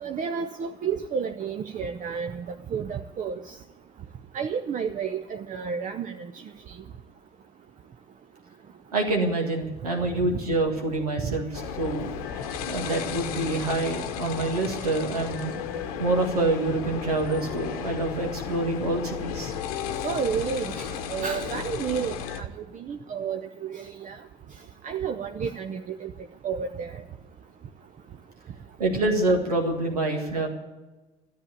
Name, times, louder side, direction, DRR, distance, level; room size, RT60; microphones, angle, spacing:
voice 1, 0.0-2.4 2.7-3.6 4.3-6.3 11.3-11.4 20.0-22.5 22.7-24.2 24.8-26.1 26.4-27.0, right 6 dB, 40° right, 7 dB, 0.7 m, -31 dB
voice 2, 8.9-11.5 11.8-12.1 12.7-15.5 16.0-19.5 28.8-30.5, right 2 dB, 85° right, 2 dB, 1.8 m, -26 dB
sound 1, 11.5-22.4, left 8 dB, 75° left, 0.9 m, -34 dB
13.0 x 8.6 x 8.7 m, 1.2 s
figure-of-eight pair, 50°, 19 cm